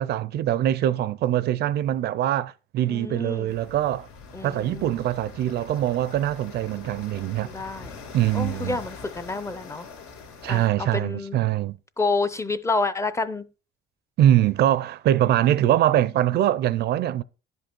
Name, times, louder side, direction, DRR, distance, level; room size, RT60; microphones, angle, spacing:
voice 1, 0.0-4.1 4.4-7.5 8.1-8.8 10.4-11.7 14.2-17.2, right 12 dB, 55° right, 0.4 m, -23 dB
voice 2, 2.9-3.5 4.3-4.9 7.5-8.0 8.3-9.9 10.5-11.4 12.0-13.4, left 3 dB, 15° left, 0.5 m, -29 dB
sound 1, 3.5-10.7, left 5 dB, 90° left, 2.6 m, -43 dB
11.0 x 5.3 x 4.4 m
cardioid pair, 135°, 21 cm